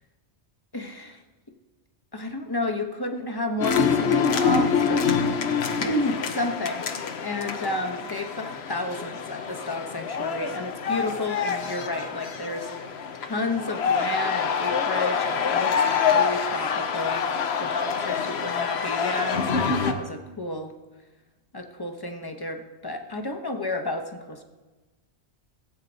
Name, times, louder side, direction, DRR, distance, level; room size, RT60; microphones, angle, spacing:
voice 1, 0.7-1.2 2.1-5.1 5.8-6.9 7.2-12.9 13.1-20.7 21.5-24.4, left 1 dB, 20° left, 6 dB, 0.8 m, -31 dB
sound 1, 3.6-19.9, left 6 dB, 70° left, 1.0 m, -26 dB
16.0 x 8.2 x 4.0 m, 1.2 s
omnidirectional pair, 1.2 m